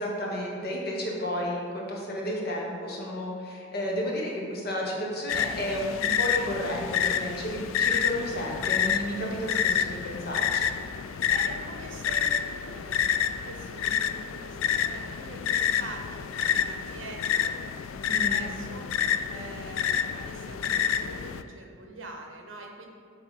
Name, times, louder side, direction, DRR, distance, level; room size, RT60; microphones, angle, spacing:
voice 1, 0.0-10.7 18.0-18.5, equal, 50° left, -2 dB, 1.3 m, -32 dB
sound 1, 5.3-21.4, left 8 dB, 80° left, 0.3 m, -28 dB
voice 2, 11.0-13.0 13.4-17.6 18.0-19.0 19.3-22.9, right 2 dB, 75° right, 2 dB, 1.0 m, -44 dB
8.2 x 3.5 x 5.4 m, 2.3 s
head